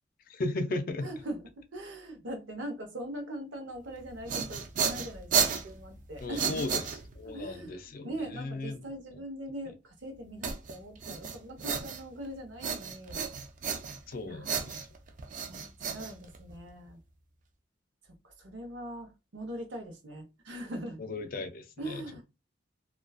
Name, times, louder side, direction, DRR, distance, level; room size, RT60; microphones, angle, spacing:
voice 1, 0.3-1.1 6.2-6.8 7.2-8.8 14.1-14.9 21.0-22.0, left 2 dB, 50° left, 0.4 m, -36 dB
voice 2, 1.0-6.7 7.2-13.3 14.2-14.8 15.5-17.0 18.2-21.0 21.8-22.2, right 1 dB, 70° right, 0.7 m, -41 dB
sound 1, 4.0-7.4 10.4-12.3 12.6-14.1 14.4-16.7, right 6 dB, 40° right, 0.3 m, -33 dB
2.4 x 2.2 x 2.2 m
head